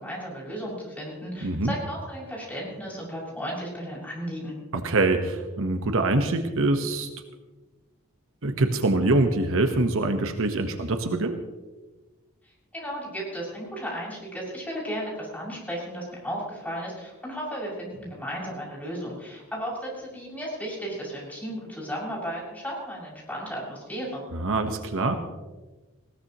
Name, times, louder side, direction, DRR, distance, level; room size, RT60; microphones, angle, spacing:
voice 1, 0.0-4.6 12.7-24.2, equal, 5° left, -5 dB, 6.9 m, -34 dB
voice 2, 1.4-1.7 4.7-7.1 8.4-11.4 24.3-25.2, right 2 dB, 65° right, 6 dB, 1.2 m, -24 dB
20.0 x 18.0 x 3.1 m, 1.2 s
head